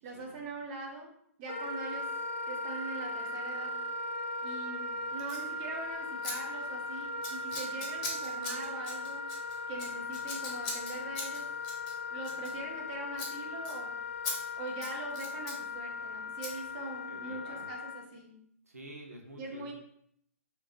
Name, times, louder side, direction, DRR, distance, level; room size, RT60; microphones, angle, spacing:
voice 1, 0.0-1.1 1.4-2.0 2.5-3.7 4.4-9.2 9.7-11.4 12.1-13.9 14.6-18.3 19.4-19.7, right 3 dB, 35° right, -1 dB, 0.8 m, -42 dB
Wind instrument woodwind instrument, 1.5-18.1, left 2 dB, 55° left, 0.3 m, -38 dB
Scissors, 5.2-5.5 6.2-6.3 6.6-6.9 7.2-12.9 13.1-13.3 13.6-13.8 14.2-14.4 14.7-15.6 16.4-16.5, left 3 dB, 35° left, 0.9 m, -40 dB
voice 2, 17.1-17.7 18.7-19.7, right 1 dB, 85° right, 0 dB, 0.5 m, -49 dB
3.0 x 2.9 x 2.9 m, 0.69 s
figure-of-eight pair, 115°, 8 cm